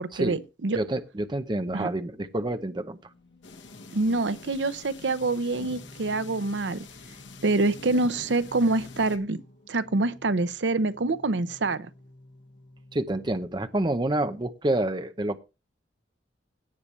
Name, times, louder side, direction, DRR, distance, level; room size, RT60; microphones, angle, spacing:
voice 1, 0.0-0.8 1.7-1.9 3.9-6.9 7.4-9.4 9.7-11.9, right 2 dB, 75° right, 0.7 m, -26 dB
voice 2, 0.7-3.0 12.9-15.4, right 1 dB, 25° right, 0.7 m, -28 dB
Race car auto racing / Alarm, 2.9-9.2, left 1 dB, 70° left, 1.9 m, -53 dB
sound 1, 3.4-9.2, left 3 dB, 90° left, 1.4 m, -46 dB
Singing, 5.0-14.0, left 1 dB, 55° left, 4.7 m, -52 dB
17.0 x 6.9 x 3.2 m
head